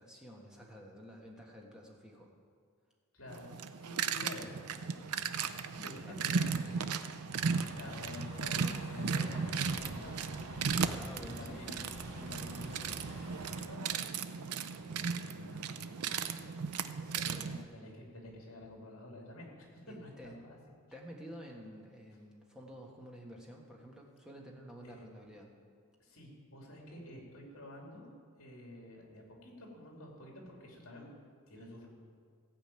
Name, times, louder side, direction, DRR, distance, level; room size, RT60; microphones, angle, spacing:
voice 1, 0.0-2.3 6.1-6.2 10.8-11.6 17.0-17.4 19.9-20.4 20.9-25.5, equal, 5° right, -2 dB, 1.4 m, -50 dB
voice 2, 3.1-3.5 3.8-7.5 7.7-10.3 10.9-11.8 12.1-13.1 13.5-16.5 17.2-20.5 24.8-25.1 26.0-28.1 28.4-31.1 31.5-31.9, left 1 dB, 65° left, -1 dB, 2.9 m, -50 dB
sound 1, 3.3-17.6, right 5 dB, 85° right, 0.6 m, -36 dB
Truck, 7.4-13.6, equal, 50° right, 2.9 m, -47 dB
15.5 x 5.3 x 8.7 m, 2.1 s
head